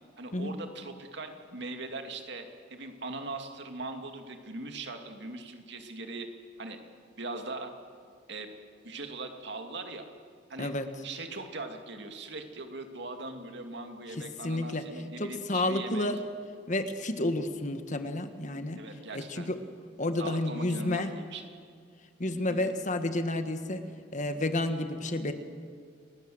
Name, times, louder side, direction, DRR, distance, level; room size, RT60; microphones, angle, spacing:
voice 1, 0.2-6.3 6.6-6.8 7.2-7.7 8.3-8.5 8.8-10.1 10.5-10.7 11.0-16.1 18.8-19.5 20.2-21.5 22.5-22.7, right 2 dB, 60° right, 5 dB, 2.5 m, -40 dB
voice 2, 14.4-14.8 15.2-16.2 16.7-18.8 19.3-19.6 20.0-21.1 22.2-23.8 24.1-25.3, left 1 dB, 40° left, 8 dB, 1.5 m, -30 dB
29.5 x 19.0 x 7.9 m, 2.1 s
head